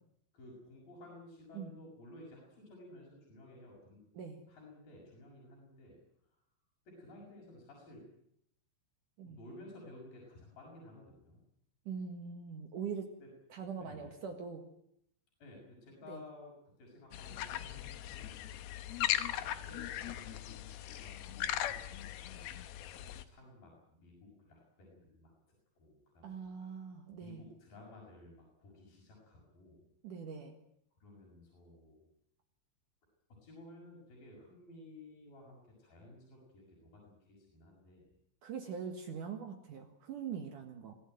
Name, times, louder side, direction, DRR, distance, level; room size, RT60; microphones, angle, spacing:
voice 1, 0.3-4.0 4.5-6.0 6.9-8.0 9.2-11.4 13.2-13.3 13.8-14.2 15.4-16.5 16.8-18.0 19.4-22.0 22.3-25.3 25.8-26.9 27.2-29.9 31.0-32.0 33.4-38.0, left 2 dB, 70° left, -2 dB, 8.0 m, -55 dB
voice 2, 11.9-13.2 13.5-14.6 16.1-16.2 26.2-27.4 30.0-30.6 38.4-41.0, right 6 dB, 60° right, 4 dB, 3.1 m, -42 dB
sound 1, 17.1-23.2, left 12 dB, 90° left, 3.0 m, -38 dB
24.5 x 16.0 x 9.2 m, 0.75 s
omnidirectional pair, 4.2 m